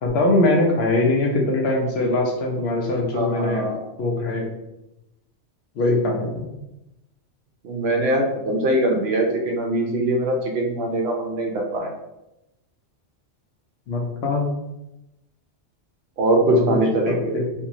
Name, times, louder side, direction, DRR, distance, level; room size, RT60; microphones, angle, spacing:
voice 1, 0.0-3.6 4.0-4.5 5.8-6.5 13.9-14.5 16.5-16.8 17.1-17.5, left 2 dB, 70° left, 0 dB, 0.8 m, -22 dB
voice 2, 3.1-3.9 7.6-11.9 16.2-17.4, right 1 dB, 65° right, 1 dB, 0.8 m, -22 dB
2.9 x 2.6 x 2.5 m, 0.91 s
omnidirectional pair, 1.2 m